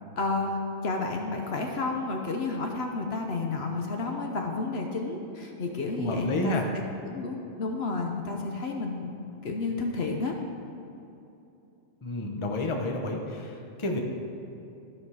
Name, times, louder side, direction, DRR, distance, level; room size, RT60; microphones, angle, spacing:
voice 1, 0.2-0.6 0.8-6.6 7.0-9.1 9.4-10.3, left 3 dB, 60° left, 2 dB, 0.9 m, -31 dB
voice 2, 6.0-6.6 12.0-14.0, left 2 dB, 30° left, 2 dB, 0.8 m, -30 dB
13.0 x 5.3 x 4.8 m, 2.8 s
omnidirectional pair, 1.3 m